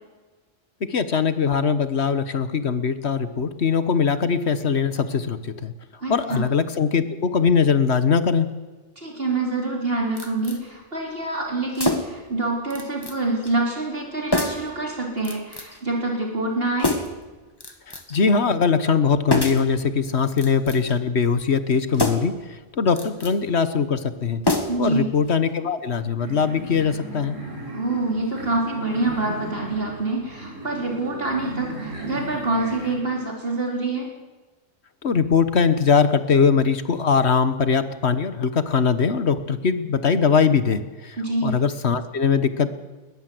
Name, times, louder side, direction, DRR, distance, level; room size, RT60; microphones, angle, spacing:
voice 1, 0.8-5.7 6.1-8.5 17.9-24.4 24.8-27.4 35.0-42.7, left 5 dB, 60° left, 12 dB, 1.5 m, -21 dB
voice 2, 6.0-6.5 9.0-17.0 24.7-25.1 27.7-34.1 41.2-41.6, right 2 dB, 50° right, 0 dB, 4.1 m, -26 dB
sound 1, 10.2-10.6 11.7-12.3 12.7-13.2 13.4-13.6 14.3-14.7 15.2-15.8 16.8-17.2 17.6-18.2 19.3-19.7 20.3-21.0 21.9-22.4 22.9-23.4 24.4-25.0 25.3-25.4, left 2 dB, 20° left, 1.8 m, -26 dB
sound 2, 26.2-32.9, right 1 dB, 90° right, 5.1 m, -36 dB
21.0 x 20.5 x 7.8 m, 1.3 s
omnidirectional pair, 1.3 m